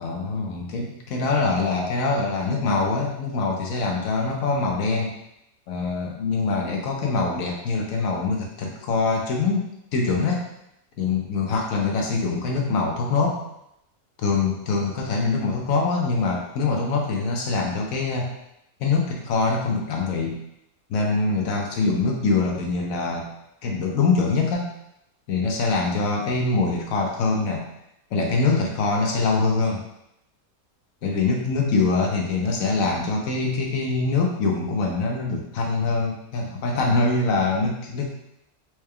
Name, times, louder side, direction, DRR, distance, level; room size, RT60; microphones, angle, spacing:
voice 1, 0.0-5.1 5.7-10.5 11.0-13.4 14.2-18.3 18.8-20.4 20.9-23.3 23.6-24.7 25.3-27.7 28.1-29.8 31.0-38.1, left 3 dB, 65° left, 0 dB, 1.0 m, -24 dB
4.5 x 3.2 x 2.2 m, 0.80 s
omnidirectional pair, 1.7 m